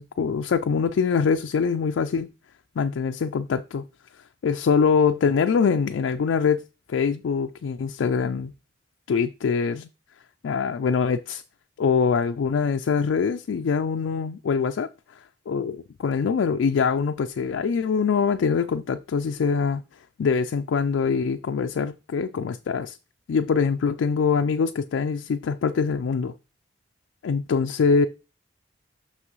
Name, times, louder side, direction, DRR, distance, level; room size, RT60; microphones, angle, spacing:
voice 1, 0.0-2.3 2.8-3.8 4.4-6.6 6.9-8.5 9.1-9.9 10.4-11.4 11.8-14.9 15.5-19.8 20.2-23.0 23.3-26.3 27.2-28.1, left 5 dB, 90° left, 0.4 m, -23 dB
6.1 x 5.9 x 3.1 m
head